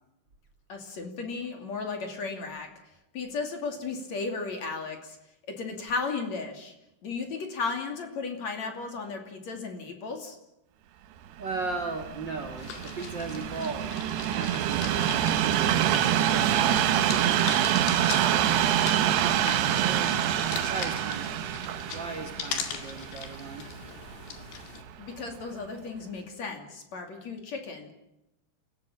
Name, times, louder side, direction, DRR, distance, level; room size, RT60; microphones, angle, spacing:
voice 1, 0.7-2.7 3.1-5.2 5.5-6.7 7.0-10.4 25.0-27.9, left 4 dB, 45° left, 4 dB, 3.7 m, -35 dB
voice 2, 11.4-13.9 14.2-20.2 20.7-21.3 21.9-23.7, right 3 dB, 45° right, 5 dB, 1.5 m, -38 dB
Train, 11.4-24.6 25.3-25.4, right 11 dB, 85° right, 3.2 m, -26 dB
sound 1, 12.6-24.8, left 7 dB, 80° left, 4.2 m, -40 dB
29.0 x 16.5 x 7.3 m, 0.86 s
omnidirectional pair, 4.6 m